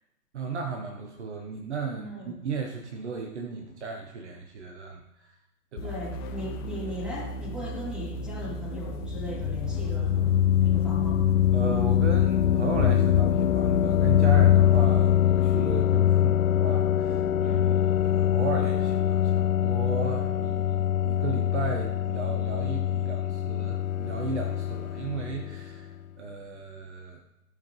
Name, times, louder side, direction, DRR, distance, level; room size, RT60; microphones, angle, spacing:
voice 1, 0.3-5.4 5.7-5.9 11.5-27.2, right 4 dB, 45° right, 4 dB, 1.3 m, -35 dB
voice 2, 1.9-2.3 5.8-11.2 17.4-17.7, left 1 dB, ahead, -4 dB, 3.1 m, -38 dB
sound 1, 5.8-14.9, right 1 dB, 15° left, 0.7 m, -36 dB
sound 2, 9.0-25.7, left 11 dB, 60° left, 0.5 m, -23 dB
16.5 x 5.8 x 3.3 m, 0.94 s
figure-of-eight pair, 125°, 47 cm